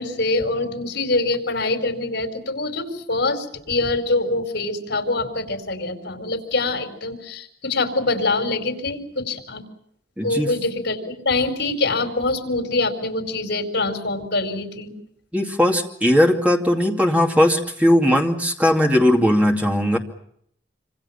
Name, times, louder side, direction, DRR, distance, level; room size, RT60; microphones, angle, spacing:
voice 1, 0.0-9.6 10.2-14.9, left 2 dB, 75° left, 5 dB, 4.6 m, -24 dB
voice 2, 10.2-10.5 15.3-20.0, left 1 dB, 10° right, 1 dB, 2.5 m, -18 dB
27.0 x 26.5 x 5.8 m, 0.70 s
head